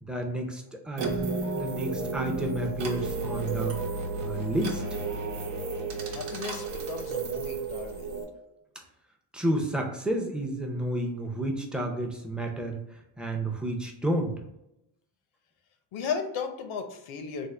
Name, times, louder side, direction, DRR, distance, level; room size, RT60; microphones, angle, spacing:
voice 1, 0.0-3.8 4.2-4.8 9.3-12.8 13.2-14.3, right 1 dB, ahead, 1 dB, 0.5 m, -31 dB
sound 1, 1.0-8.2, right 4 dB, 75° right, 0.9 m, -32 dB
voice 2, 6.1-8.1 15.9-17.5, left 6 dB, 80° left, 6 dB, 0.7 m, -35 dB
3.6 x 2.1 x 3.2 m, 0.85 s
cardioid pair, 105°, 47 cm